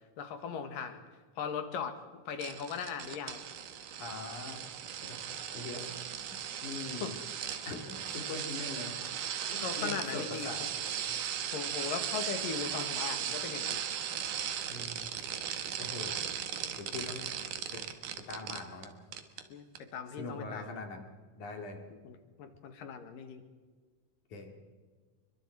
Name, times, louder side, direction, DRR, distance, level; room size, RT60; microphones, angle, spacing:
voice 1, 0.2-1.0 1.4-2.0 2.3-3.4 7.0-7.1 9.5-10.5 11.5-13.8 19.5-19.7 19.9-20.7 22.1-23.4, left 6 dB, 85° left, 7 dB, 3.4 m, -38 dB
sound 1, 2.4-18.9 19.1-19.4 19.8-19.9, right 9 dB, 75° right, 3.0 m, -37 dB
voice 2, 4.0-4.6 5.0-5.2 5.5-5.9 6.3-7.1 7.7-9.0 9.5-10.6 11.1-11.2 11.5-11.6 14.7-15.0 15.8-16.2 16.8-17.3 17.7-17.8 18.3-18.9 20.2-21.1 21.4-21.8 24.3-24.6, left 3 dB, 65° left, 3 dB, 4.1 m, -42 dB
30.0 x 23.0 x 4.7 m, 1.5 s
omnidirectional pair, 3.8 m